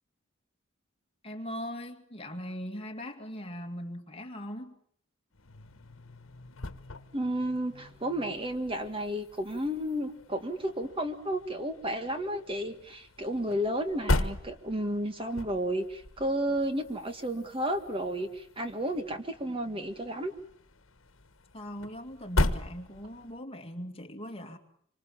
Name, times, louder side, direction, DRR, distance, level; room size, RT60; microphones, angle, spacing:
voice 1, 1.2-4.8 21.5-24.6, equal, 30° left, 2.3 m, -40 dB
sound 1, 5.3-23.4, left 2 dB, 75° left, 1.4 m, -37 dB
voice 2, 7.1-20.3, right 1 dB, 25° right, 1.7 m, -32 dB
26.5 x 25.0 x 7.3 m
head